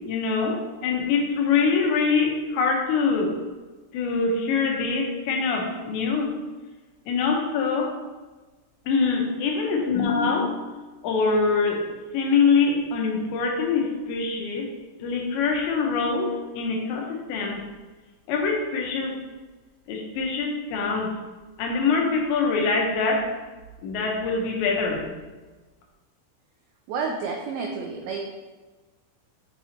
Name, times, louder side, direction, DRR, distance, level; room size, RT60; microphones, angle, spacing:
voice 1, 0.0-3.3 3.9-6.3 7.1-7.9 8.9-11.8 12.1-14.7 15.0-17.6 18.3-19.2 19.9-21.1 21.6-23.3 23.8-25.1, left 4 dB, 85° left, 1 dB, 3.2 m, -24 dB
voice 2, 26.9-28.2, right 5 dB, 90° right, 1 dB, 2.1 m, -30 dB
7.2 x 6.0 x 2.8 m, 1.3 s
omnidirectional pair, 5.1 m